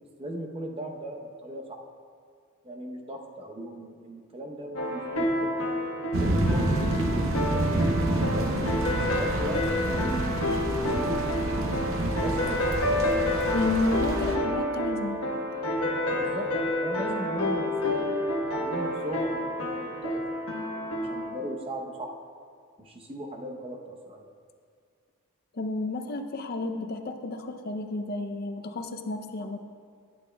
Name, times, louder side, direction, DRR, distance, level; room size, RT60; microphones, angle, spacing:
voice 1, 0.2-1.8 2.6-5.5 6.2-8.6 8.9-10.4 10.8-11.8 12.2-12.8 16.2-16.5 16.8-18.2 18.5-20.2 21.1-22.1 22.8-24.3, equal, 25° right, 1 dB, 0.7 m, -37 dB
sound 1, 4.8-21.3, left 1 dB, 85° left, 1.1 m, -29 dB
sound 2, 6.1-14.4, right 1 dB, 60° right, 0.7 m, -28 dB
voice 2, 13.5-15.2 25.5-29.6, left 3 dB, 45° left, 7 dB, 0.5 m, -31 dB
11.5 x 8.7 x 2.2 m, 2.1 s
head